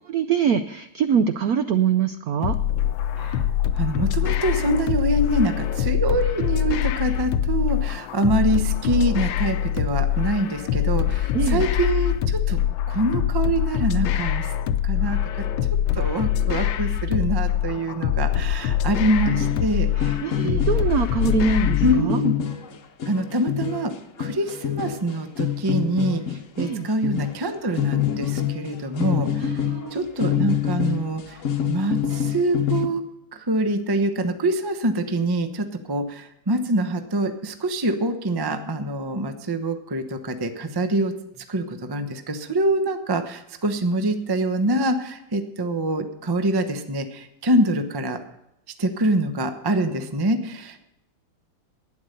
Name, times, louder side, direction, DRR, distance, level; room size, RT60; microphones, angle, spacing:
voice 1, 0.1-2.6 11.3-11.6 20.2-22.2 26.6-26.9 29.4-30.0, right 7 dB, 80° right, 10 dB, 0.8 m, -23 dB
sound 1, 2.4-22.0, left 11 dB, 75° left, 1.4 m, -24 dB
voice 2, 3.8-12.6 12.9-14.5 14.8-15.5 16.0-20.2 20.4-20.6 21.8-22.3 23.1-23.9 24.2-26.2 26.6-29.3 29.9-31.4 31.7-33.0 33.5-41.1 41.5-48.2 48.8-50.8, right 1 dB, 40° right, 8 dB, 0.3 m, -25 dB
sound 2, 19.3-32.9, left 9 dB, 50° left, 1.1 m, -26 dB
12.0 x 9.7 x 6.6 m, 0.86 s
omnidirectional pair, 2.3 m